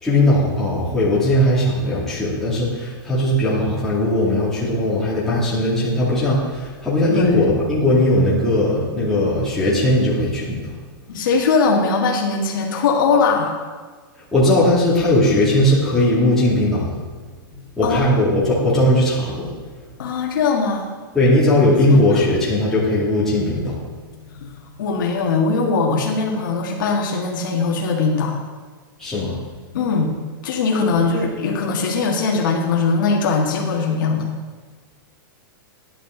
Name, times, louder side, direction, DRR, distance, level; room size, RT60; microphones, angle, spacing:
voice 1, 0.0-10.7 14.3-17.0 17.8-19.5 21.1-23.8 29.0-29.4, left 1 dB, 5° left, -9 dB, 2.5 m, -18 dB
voice 2, 7.1-7.4 11.1-13.5 17.5-18.0 20.0-20.9 21.9-22.2 24.3-24.5 24.8-28.4 29.7-30.1 30.4-34.3, left 4 dB, 60° left, 0 dB, 1.8 m, -20 dB
10.5 x 10.0 x 3.9 m, 1.4 s
supercardioid pair, 170°, 12 cm